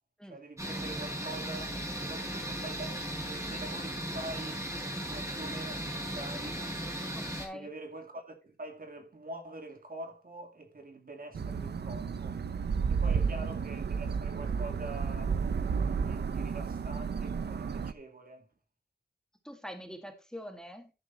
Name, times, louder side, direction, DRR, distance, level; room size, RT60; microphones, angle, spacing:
voice 1, 0.3-4.6 5.0-6.7 7.5-12.4 12.9-18.5, right 2 dB, 60° right, 2.4 m, -45 dB
sound 1, 0.6-7.5, right 1 dB, 20° right, 4.9 m, -37 dB
voice 2, 7.1-7.7 13.1-13.2 19.4-20.9, equal, 5° left, 1.8 m, -44 dB
sound 2, 11.3-17.9, right 6 dB, 85° right, 0.6 m, -32 dB
11.5 x 6.5 x 4.0 m
wide cardioid pair, 85°, 17 cm